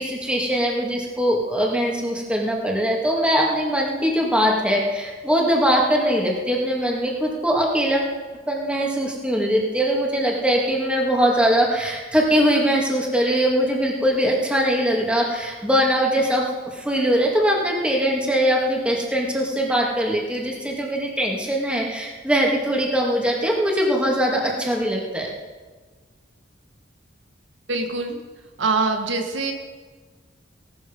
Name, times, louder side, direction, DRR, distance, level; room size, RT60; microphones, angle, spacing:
voice 1, 0.0-8.1 8.5-16.4 16.7-25.3, equal, 5° right, -1 dB, 2.5 m, -21 dB
voice 2, 27.7-28.2 28.6-29.5, right 3 dB, 85° right, 5 dB, 1.7 m, -23 dB
17.5 x 12.5 x 5.4 m, 1.4 s
head